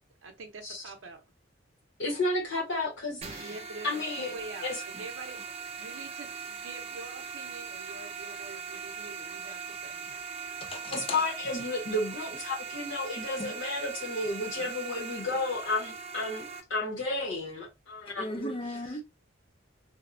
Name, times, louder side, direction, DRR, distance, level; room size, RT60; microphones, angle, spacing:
voice 1, 0.2-1.2 3.4-5.4 5.8-10.0 14.5-15.1, right 3 dB, 85° right, 0.6 m, -45 dB
voice 2, 2.0-3.5 3.8-4.3 4.6-4.8 10.9-18.5, left 2 dB, 70° left, 1.0 m, -32 dB
sound 1, 3.2-16.6, right 6 dB, 30° right, 0.4 m, -40 dB
voice 3, 10.6-11.3 13.4-13.6 18.2-19.0, left 2 dB, 30° left, 0.4 m, -37 dB
2.7 x 2.1 x 2.5 m
head